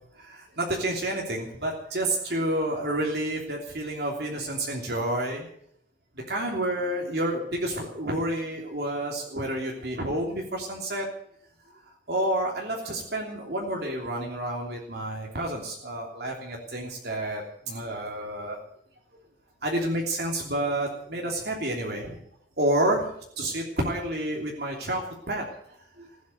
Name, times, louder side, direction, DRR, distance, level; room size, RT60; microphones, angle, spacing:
voice 1, 0.1-5.5 6.1-11.1 11.8-18.6 19.6-22.2 22.6-23.1 23.4-26.1, right 1 dB, 60° right, -1 dB, 3.1 m, -29 dB
16.0 x 9.3 x 9.4 m, 0.67 s
head